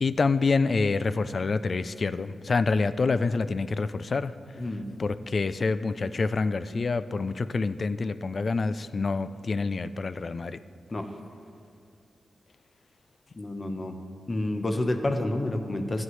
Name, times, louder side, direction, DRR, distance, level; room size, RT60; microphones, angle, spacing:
voice 1, 0.0-4.6 5.0-10.6, left 4 dB, 45° left, 14 dB, 0.3 m, -27 dB
voice 2, 4.6-4.9 10.9-11.1 13.3-14.0 14.3-16.0, left 1 dB, 30° left, 6 dB, 0.8 m, -29 dB
15.0 x 9.3 x 3.2 m, 2.3 s
wide cardioid pair, 125°, 0 cm